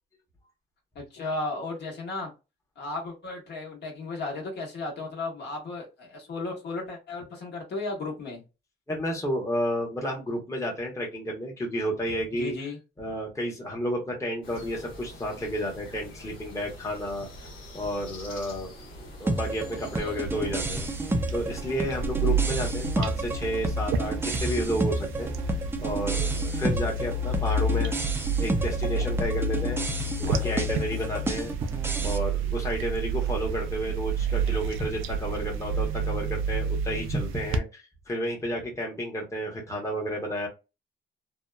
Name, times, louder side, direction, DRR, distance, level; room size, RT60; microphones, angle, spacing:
voice 1, 0.9-2.3 2.8-8.4 12.3-12.8, left 3 dB, 60° left, 1.2 m, -34 dB
voice 2, 8.9-12.5 13.0-20.9 21.3-25.3 25.8-28.0 28.4-29.8 30.2-31.5 32.0-40.5, equal, 15° left, 0.9 m, -31 dB
sound 1, 14.4-20.3, left 1 dB, 90° left, 1.0 m, -45 dB
sound 2, 19.3-32.2, right 2 dB, 10° right, 0.4 m, -31 dB
sound 3, 20.2-37.6, right 3 dB, 85° right, 0.4 m, -30 dB
2.8 x 2.2 x 2.2 m
cardioid pair, 90°, 20 cm